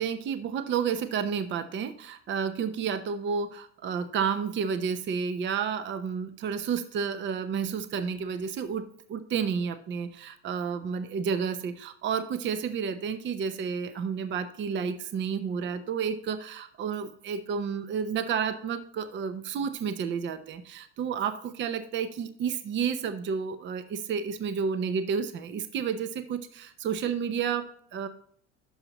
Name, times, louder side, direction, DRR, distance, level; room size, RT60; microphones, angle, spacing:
voice 1, 0.0-28.1, right 6 dB, 35° right, 11 dB, 0.8 m, -31 dB
11.5 x 5.8 x 2.9 m, 0.62 s
supercardioid pair, 100°, 32 cm